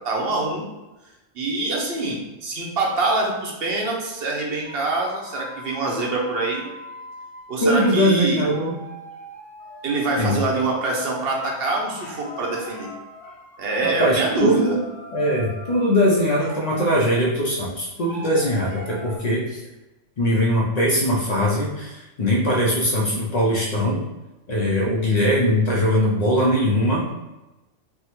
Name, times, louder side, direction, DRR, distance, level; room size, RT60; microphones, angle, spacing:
voice 1, 0.0-0.6 1.4-6.7 7.5-8.4 9.8-12.9 13.6-14.7, right 2 dB, 60° right, -2 dB, 0.7 m, -25 dB
sound 1, 4.6-7.7 8.5-17.4 18.1-19.2, equal, 45° left, 1.2 m, -41 dB
voice 2, 7.6-8.8 10.2-10.4 13.8-14.8 15.1-19.6 20.2-24.0 24.5-27.1, equal, 80° left, -5 dB, 0.3 m, -21 dB
3.4 x 2.0 x 2.9 m, 1.0 s
omnidirectional pair, 1.4 m